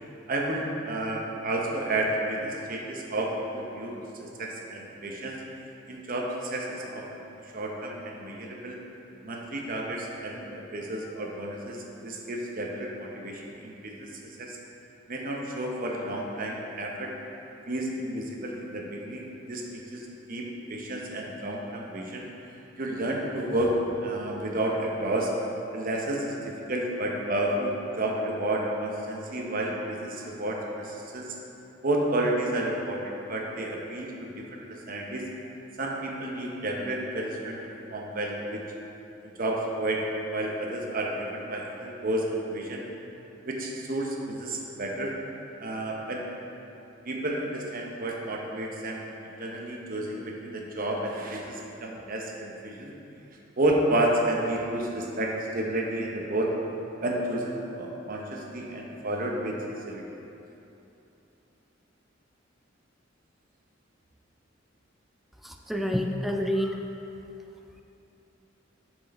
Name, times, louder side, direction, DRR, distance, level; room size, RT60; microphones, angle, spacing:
voice 1, 0.3-5.4 5.9-8.8 9.2-14.1 14.4-14.6 15.1-17.1 17.7-22.3 22.8-23.8 24.0-25.3 25.7-31.3 31.8-35.2 35.8-37.6 37.9-38.6 39.2-40.0 40.3-42.8 43.4-45.1 45.6-46.2 47.0-52.9 53.6-56.5 57.0-59.6 59.9-60.0, right 1 dB, 45° right, -1 dB, 0.9 m, -31 dB
voice 2, 65.4-66.8, equal, ahead, 3 dB, 0.3 m, -28 dB
7.6 x 4.6 x 4.1 m, 2.9 s
head